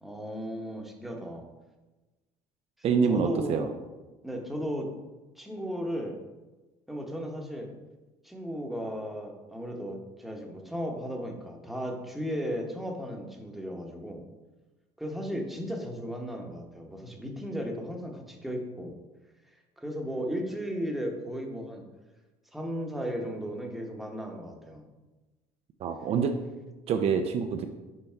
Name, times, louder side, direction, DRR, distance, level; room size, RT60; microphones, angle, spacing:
voice 1, 0.0-1.5 3.1-3.7 4.2-4.9 5.3-6.1 6.9-7.7 8.2-14.2 15.0-19.0 19.8-21.8 22.5-24.9, equal, ahead, 1 dB, 1.0 m, -35 dB
voice 2, 2.8-3.7 25.8-26.4 26.9-27.7, right 6 dB, 50° right, 6 dB, 0.5 m, -26 dB
5.7 x 4.0 x 4.4 m, 1.2 s
supercardioid pair, 100°, 13 cm